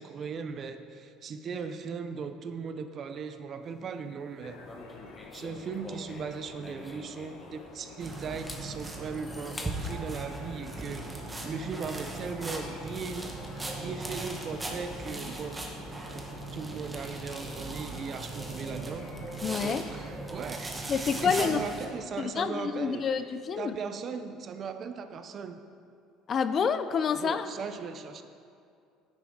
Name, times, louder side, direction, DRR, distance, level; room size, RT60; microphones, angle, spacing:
voice 1, 0.0-4.6 5.3-13.3 13.7-15.6 16.1-16.3 16.5-19.1 19.6-23.1 23.6-25.6 27.1-28.2, right 5 dB, 35° right, 9 dB, 0.5 m, -38 dB
sound 1, 4.4-20.2, left 3 dB, 80° left, 1.1 m, -49 dB
sound 2, 4.6-7.9 8.3-10.0, left 2 dB, 15° left, 0.8 m, -46 dB
sound 3, 8.0-21.9, right 2 dB, 10° right, 1.0 m, -38 dB
voice 2, 19.4-19.8 20.9-21.6 22.2-23.8 26.3-27.5, left 6 dB, 35° left, 12 dB, 0.3 m, -28 dB
9.8 x 9.7 x 3.7 m, 2.4 s
cardioid pair, 145°, 0 cm